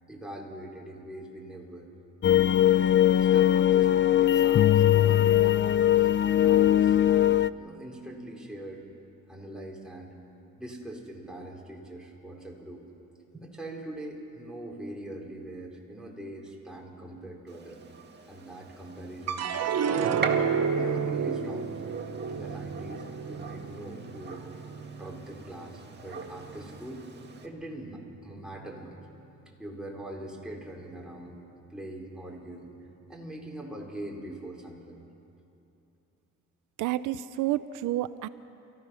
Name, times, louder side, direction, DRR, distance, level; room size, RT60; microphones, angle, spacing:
voice 1, 0.1-1.8 3.1-6.1 6.4-8.8 9.3-10.1 10.6-12.8 13.3-17.8 18.3-20.2 20.8-21.7 22.3-24.4 25.0-27.1 27.4-29.0 29.6-31.4 31.7-32.7 33.1-35.0, right 1 dB, ahead, -2 dB, 4.1 m, -42 dB
sound 1, 2.2-7.5, left 12 dB, 40° left, 0.4 m, -21 dB
Gunshot gunfire, 17.5-27.5, right 4 dB, 35° right, 2.1 m, -41 dB
sound 2, 19.3-25.7 26.2-26.8, right 6 dB, 55° right, 1.2 m, -31 dB
voice 2, 36.8-38.3, right 14 dB, 85° right, 14 dB, 0.6 m, -29 dB
28.5 x 15.0 x 6.3 m, 2.8 s
cardioid pair, 90°, 30 cm